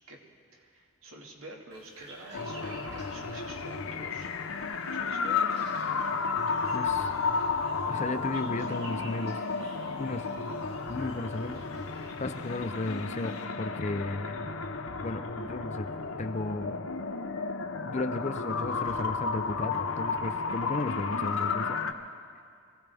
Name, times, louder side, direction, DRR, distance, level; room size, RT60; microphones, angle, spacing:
voice 1, 0.5-4.3 4.9-5.6 6.4-6.7, right 1 dB, 85° right, 0 dB, 2.1 m, -47 dB
sound 1, 1.7-13.4, right 1 dB, 50° right, 3.1 m, -53 dB
sound 2, 2.3-21.9, left 4 dB, 75° left, 0.7 m, -32 dB
voice 2, 6.7-7.1 7.9-9.4 10.0-10.3 10.9-11.6 12.2-14.4 15.0-15.9 16.2-16.8 17.8-21.8, left 2 dB, 35° left, 9 dB, 0.5 m, -34 dB
23.5 x 15.5 x 3.5 m, 2.3 s
head